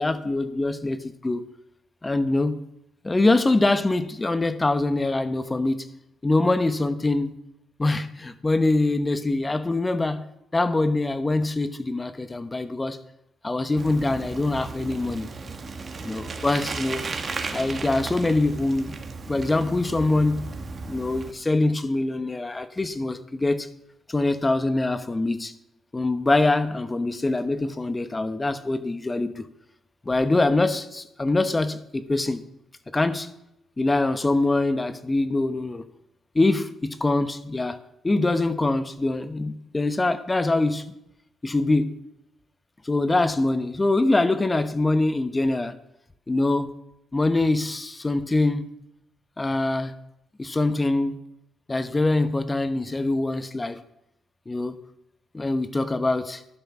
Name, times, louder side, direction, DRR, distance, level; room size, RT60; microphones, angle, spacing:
voice 1, 0.0-1.4 2.0-2.6 3.0-5.9 6.2-7.3 7.8-10.2 10.5-13.0 13.4-15.3 16.0-17.0 17.5-18.9 19.3-20.5 20.8-23.7 24.1-25.5 25.9-29.5 30.0-32.4 32.9-33.3 33.8-35.8 36.3-37.8 38.0-40.8 41.4-41.9 42.8-45.8 46.3-46.7 47.1-48.7 49.4-49.9 50.4-51.2 51.7-53.8 54.5-54.8 55.3-56.4, left 2 dB, 25° left, 1.0 m, -24 dB
Bicycle, 13.8-21.3, right 4 dB, 45° right, 1.7 m, -35 dB
11.5 x 9.4 x 6.0 m
supercardioid pair, 60°, 0 cm